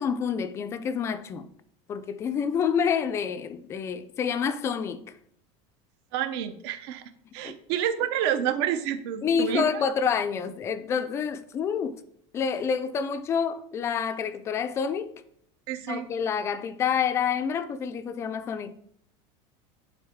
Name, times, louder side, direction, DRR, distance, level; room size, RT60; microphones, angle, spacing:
voice 1, 0.0-1.5 1.9-5.0 7.4-7.6 9.2-11.9 12.3-15.1 15.9-18.8, left 7 dB, 20° left, 0.3 m, -28 dB
voice 2, 6.1-9.9 15.7-16.1, right 10 dB, 65° right, 0.7 m, -29 dB
10.0 x 3.9 x 3.5 m
cardioid pair, 175°, 15 cm